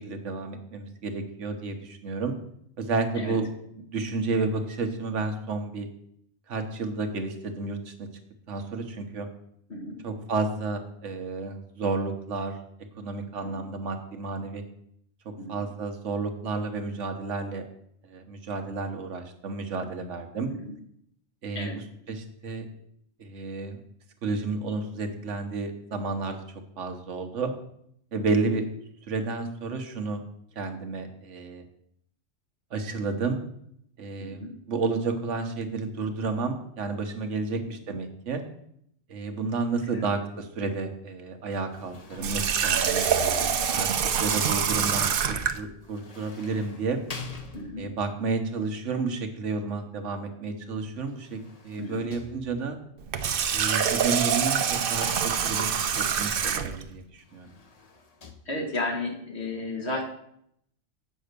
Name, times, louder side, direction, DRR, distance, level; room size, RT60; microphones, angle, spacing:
voice 1, 0.0-2.3 2.8-3.5 3.8-5.9 6.5-8.1 8.5-9.3 10.0-12.6 13.0-14.6 15.2-17.6 18.0-20.5 21.4-22.7 23.2-23.8 24.2-26.4 26.8-27.5 28.1-28.7 29.1-30.2 30.6-31.7 32.7-33.4 34.0-34.4 34.7-38.4 39.1-43.1 43.7-47.0 47.8-52.8 53.5-55.7 56.0-57.5, right 4 dB, 75° right, 6 dB, 1.4 m, -31 dB
voice 2, 34.2-34.5 39.9-40.1 43.2-43.5 47.5-47.8 51.8-52.1 58.4-60.0, left 2 dB, 60° left, 3 dB, 1.8 m, -33 dB
sound 1, 41.5-43.9 45.8-48.1 50.9-52.8 53.8-55.8 57.1-58.3, left 4 dB, 35° left, 0.9 m, -45 dB
Water tap faucet, 42.2-45.6 53.0-56.8, right 7 dB, 55° right, 0.7 m, -25 dB
7.8 x 5.5 x 6.6 m, 0.71 s
omnidirectional pair, 1.3 m